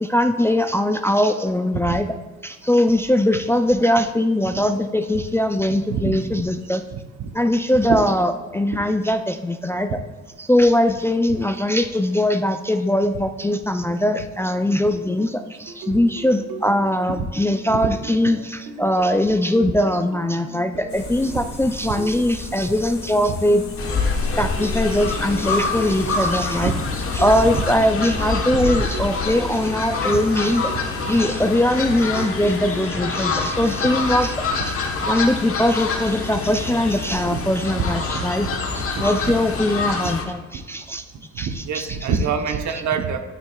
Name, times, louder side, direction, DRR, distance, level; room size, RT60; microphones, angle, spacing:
voice 1, 0.0-2.1 2.4-6.8 7.3-10.0 10.4-23.6 24.4-26.7 27.1-30.7 31.1-34.8 35.1-38.5 38.7-41.0 41.4-42.1, left 1 dB, 10° left, 8 dB, 0.3 m, -21 dB
voice 2, 6.9-7.3 7.9-8.0 17.7-17.8 26.6-26.8 37.3-37.4 37.8-37.9 38.1-38.2 41.3-43.2, right 6 dB, 70° right, 6 dB, 1.0 m, -25 dB
sound 1, 14.9-34.3, right 2 dB, 85° right, 1.3 m, -38 dB
sound 2, 20.9-27.8, left 3 dB, 65° left, 2.3 m, -30 dB
Fowl, 23.8-40.2, left 4 dB, 45° left, 1.2 m, -27 dB
9.6 x 9.1 x 2.3 m, 1.3 s
cardioid pair, 90°, 30 cm